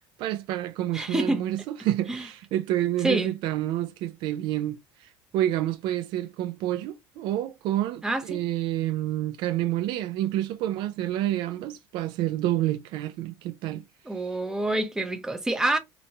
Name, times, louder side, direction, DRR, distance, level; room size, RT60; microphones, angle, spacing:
voice 1, 0.2-4.8 5.3-13.8, right 13 dB, 65° right, 0.4 m, -28 dB
voice 2, 0.9-1.4 2.1-2.2 3.0-3.3 8.0-8.4 14.1-15.8, right 2 dB, 5° right, 0.6 m, -27 dB
3.0 x 2.1 x 2.6 m
cardioid pair, 110°, 9 cm